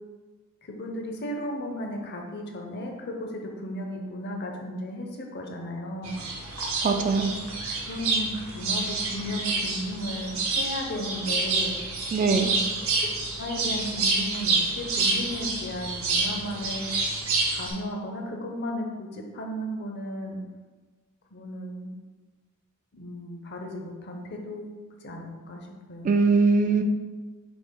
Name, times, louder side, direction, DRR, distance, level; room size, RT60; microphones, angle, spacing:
voice 1, 0.6-6.2 7.9-11.8 13.4-16.9 17.5-20.4 21.3-21.9 22.9-24.7 25.0-25.6 25.9-26.1, equal, 50° left, 2 dB, 0.7 m, -34 dB
sound 1, 6.0-17.7, right 3 dB, 75° right, 0.9 m, -28 dB
voice 2, 6.8-7.3 12.1-12.5 26.0-26.8, right 4 dB, 35° right, 6 dB, 0.3 m, -21 dB
5.3 x 2.1 x 4.6 m, 1.4 s
head